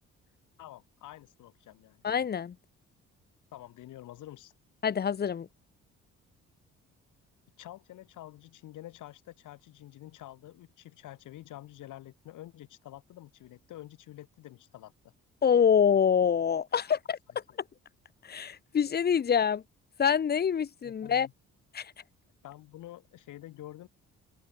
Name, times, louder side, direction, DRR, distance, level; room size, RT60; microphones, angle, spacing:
voice 1, 0.6-2.0 3.5-4.5 7.6-15.1 16.8-16.9 20.8-21.3 22.4-23.9, left 14 dB, 85° left, 6.3 m, -48 dB
voice 2, 2.0-2.6 4.8-5.5 15.4-17.2 18.2-19.6 20.0-21.3 21.7-21.9, left 7 dB, 35° left, 0.7 m, -26 dB
open air
cardioid pair, 90°, 30 cm